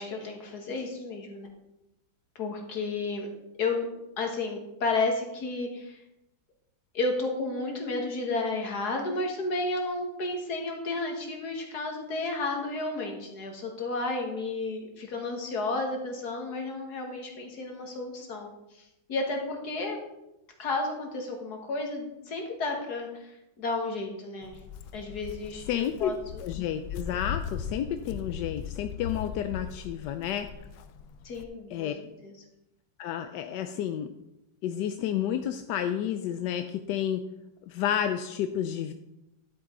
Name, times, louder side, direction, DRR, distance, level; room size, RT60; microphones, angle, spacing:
voice 1, 0.0-1.5 2.4-3.3 3.6-3.9 4.2-6.0 6.9-20.0 20.6-24.6 24.9-26.4 31.2-31.9 32.2-32.3, left 3 dB, 55° left, 2 dB, 2.1 m, -32 dB
Walk footsteps, 24.4-31.4, left 7 dB, 90° left, 1.5 m, -39 dB
voice 2, 25.7-26.1 26.4-30.5 31.7-31.9 33.0-34.1 34.6-37.2 37.7-38.9, left 10 dB, 70° left, 8 dB, 1.1 m, -30 dB
11.5 x 8.6 x 3.8 m, 0.90 s
omnidirectional pair, 2.1 m